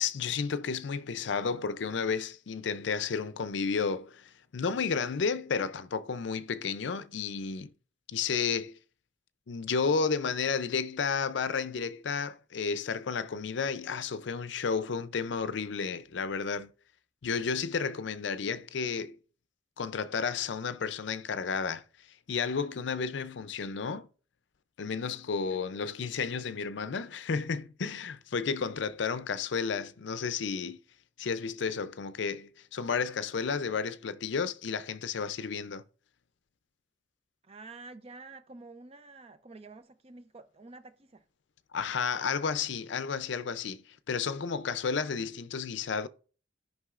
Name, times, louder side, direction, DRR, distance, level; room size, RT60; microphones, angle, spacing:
voice 1, 0.0-7.7 8.1-8.8 9.5-16.7 17.2-19.2 19.8-21.8 22.3-24.1 24.8-30.8 31.2-35.8 41.7-46.1, left 5 dB, 65° left, 0.5 m, -32 dB
voice 2, 37.4-41.2, right 3 dB, 30° right, 0.6 m, -49 dB
13.0 x 5.4 x 2.4 m
head